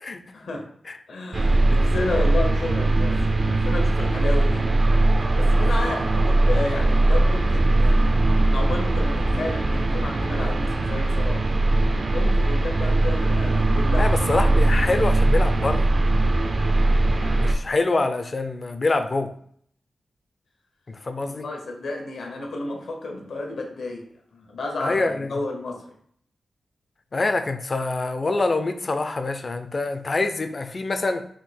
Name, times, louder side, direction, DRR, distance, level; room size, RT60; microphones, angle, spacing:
voice 1, 0.3-0.7 1.1-4.7 5.3-11.5 12.1-14.7 21.3-24.1 24.3-26.0, left 2 dB, 80° left, 1 dB, 1.0 m, -32 dB
sound 1, 1.3-17.5, right 2 dB, 45° right, 0.5 m, -20 dB
voice 2, 14.0-15.9 17.4-19.3 20.9-21.5 24.8-25.3 27.1-31.2, left 3 dB, 40° left, 8 dB, 0.4 m, -25 dB
3.7 x 2.7 x 4.3 m, 0.62 s
wide cardioid pair, 105°, 0 cm